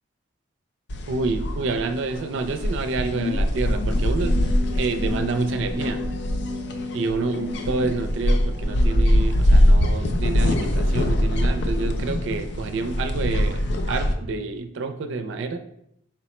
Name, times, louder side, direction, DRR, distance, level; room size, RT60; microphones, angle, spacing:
sound 1, 0.9-14.1, left 1 dB, 60° left, 0.4 m, -22 dB
voice 1, 1.1-4.3 4.7-6.0 6.9-15.6, right 4 dB, 70° right, 7 dB, 0.4 m, -28 dB
sound 2, 4.2-9.5, left 2 dB, 15° right, 0.5 m, -34 dB
4.2 x 2.0 x 4.2 m, 0.76 s
head